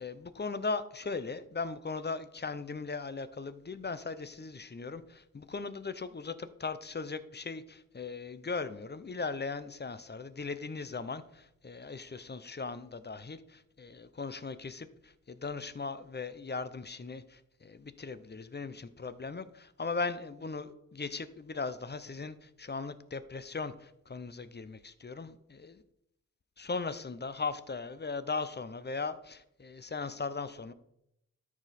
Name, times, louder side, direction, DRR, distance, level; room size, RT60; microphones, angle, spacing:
voice 1, 0.0-25.8 26.6-30.7, left 4 dB, 35° left, 13 dB, 0.6 m, -38 dB
13.0 x 5.0 x 4.2 m, 0.80 s
wide cardioid pair, 85°, 30 cm